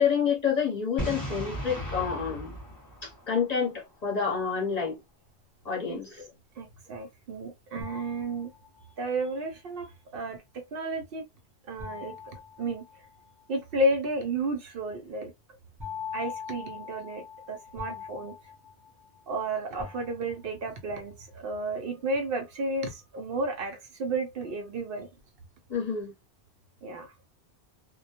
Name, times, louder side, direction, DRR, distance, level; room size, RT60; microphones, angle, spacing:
voice 1, 0.0-2.6 3.0-5.0 5.6-6.3 25.7-26.1, left 6 dB, 40° left, 0.8 m, -28 dB
Boom, 1.0-3.8, equal, 20° left, 1.1 m, -36 dB
voice 2, 6.6-8.5 9.0-9.9 10.1-10.4 10.7-11.2 11.7-12.8 13.5-15.3 16.1-18.3 19.3-25.1 26.8-27.1, right 2 dB, 65° right, 0.7 m, -32 dB
sound 1, 7.8-9.0 11.8-13.4 15.8-19.4 19.8-20.7, left 7 dB, 25° right, 0.5 m, -42 dB
2.2 x 2.1 x 2.8 m
omnidirectional pair, 1.1 m